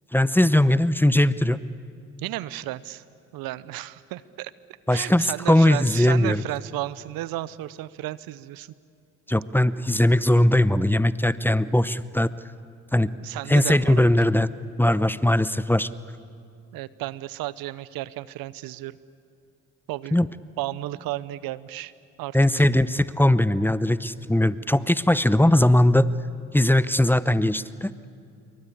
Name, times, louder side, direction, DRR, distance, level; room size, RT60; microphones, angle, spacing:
voice 1, 0.1-1.6 4.9-6.4 9.3-12.3 12.9-13.1 13.5-14.5 14.8-15.9 20.1-20.3 22.3-26.1 26.5-27.9, left 1 dB, 5° left, 16 dB, 0.8 m, -20 dB
voice 2, 2.2-3.0 3.3-4.5 4.9-8.7 13.2-14.0 16.7-19.0 19.9-20.2 20.6-21.9 22.2-22.4, right 16 dB, 70° right, 18 dB, 0.8 m, -33 dB
27.5 x 23.5 x 8.6 m, 2.4 s
hypercardioid pair, 45°, 37 cm